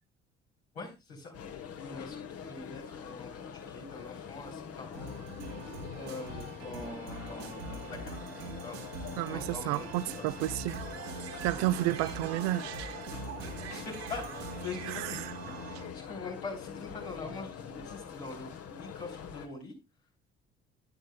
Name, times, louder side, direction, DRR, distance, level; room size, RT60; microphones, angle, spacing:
voice 1, 0.7-1.3 1.8-5.3 5.9-8.3 8.6-8.8 9.2-9.9 10.2-10.3 13.4-15.3 15.6-19.7, left 3 dB, 85° left, 3.4 m, -44 dB
sound 1, 1.3-19.5, left 7 dB, 50° left, 1.1 m, -45 dB
sound 2, 4.9-16.0, right 3 dB, 80° right, 1.6 m, -42 dB
voice 2, 9.2-10.8 11.4-12.9 14.9-15.3, right 17 dB, 60° right, 0.4 m, -31 dB
11.5 x 10.5 x 2.2 m
figure-of-eight pair, 45°, 32 cm